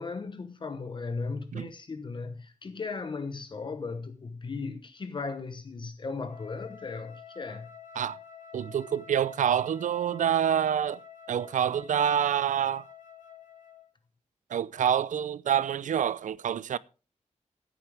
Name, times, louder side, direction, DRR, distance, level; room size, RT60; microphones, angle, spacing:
voice 1, 0.0-7.7, left 4 dB, 40° left, 1.0 m, -37 dB
Wind instrument woodwind instrument, 6.3-13.9, left 7 dB, 85° left, 2.1 m, -49 dB
voice 2, 8.5-11.0 11.3-12.8 14.5-16.8, right 9 dB, 85° right, 0.5 m, -27 dB
15.5 x 8.9 x 3.4 m
wide cardioid pair, 160°, 13 cm